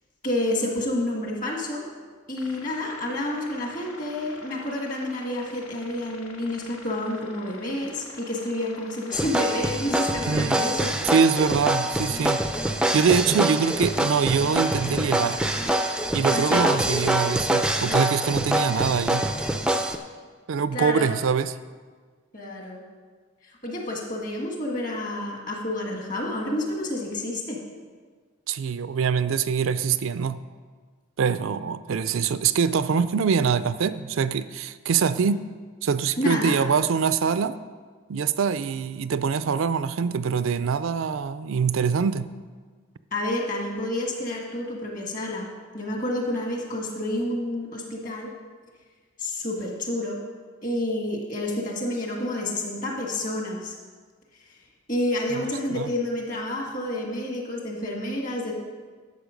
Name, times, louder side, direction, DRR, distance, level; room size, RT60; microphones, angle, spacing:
voice 1, 0.2-1.8 2.3-11.0 16.3-16.7 20.7-21.1 22.3-22.8 23.4-27.6 36.2-36.6 43.1-45.5 45.7-48.3 49.2-50.2 50.6-53.7 54.9-58.5, left 1 dB, 40° left, 0 dB, 1.9 m, -29 dB
sound 1, 2.3-15.8, left 3 dB, 85° left, 1.4 m, -45 dB
sound 2, 9.1-20.0, right 1 dB, 5° right, 0.4 m, -25 dB
voice 2, 10.3-10.6 11.1-12.4 12.9-15.4 16.1-19.3 20.5-21.5 28.5-30.4 31.2-35.4 35.8-37.6 38.1-42.3 55.4-55.5 55.7-55.9, right 6 dB, 70° right, 14 dB, 0.4 m, -24 dB
12.0 x 7.1 x 5.2 m, 1.5 s
head